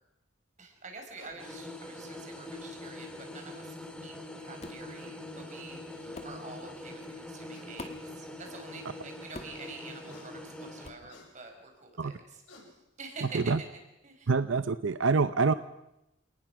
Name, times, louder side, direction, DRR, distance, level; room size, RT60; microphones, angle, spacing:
voice 1, 0.6-3.8 4.0-12.4 13.0-13.5 14.0-14.3, right 3 dB, 40° right, 4 dB, 5.0 m, -47 dB
sound 1, 1.2-1.4 2.9-3.0 4.6-4.7 5.0-5.2 5.7-5.8 6.0-6.2 7.5-7.7 8.5-8.6 10.1-10.3 11.1-11.3 12.1-12.2 12.5-12.7, left 2 dB, 80° left, 6.9 m, -54 dB
sound 2, 1.4-10.9, left 1 dB, 5° left, 2.3 m, -44 dB
sound 3, 4.6-4.9 6.2-6.4 7.8-8.1 9.3-9.7 10.8-11.1, left 2 dB, 35° left, 2.1 m, -44 dB
voice 2, 13.2-13.6 14.3-15.5, right 4 dB, 85° right, 12 dB, 0.7 m, -26 dB
28.0 x 19.5 x 6.0 m, 0.91 s
head